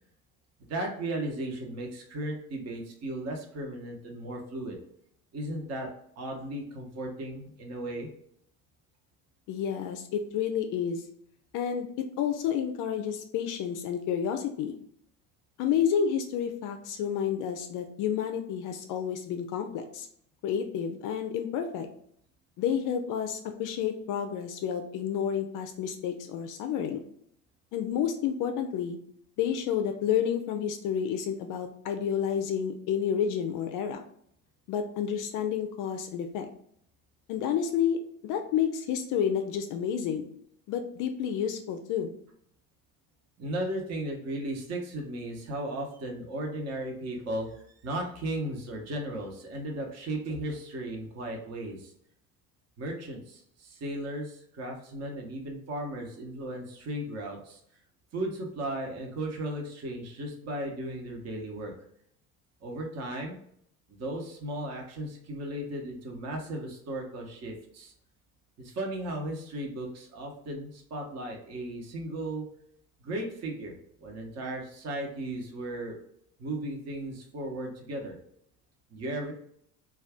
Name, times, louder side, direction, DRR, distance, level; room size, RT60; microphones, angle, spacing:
voice 1, 0.6-4.8 5.3-5.9 6.2-8.1 43.4-51.9 52.8-57.6 58.1-61.7 62.6-63.4 63.9-67.9 68.6-72.4 73.0-73.7 74.0-76.0 76.4-78.2 78.9-79.3, right 1 dB, 35° right, 1 dB, 0.8 m, -36 dB
voice 2, 9.5-11.0 11.5-14.7 15.6-20.1 20.4-21.9 22.6-27.0 27.7-29.0 29.4-34.0 34.7-36.5 37.3-40.3 40.7-42.1, left 8 dB, 45° left, 6 dB, 0.4 m, -30 dB
2.4 x 2.4 x 3.3 m, 0.68 s
hypercardioid pair, 70°, 44 cm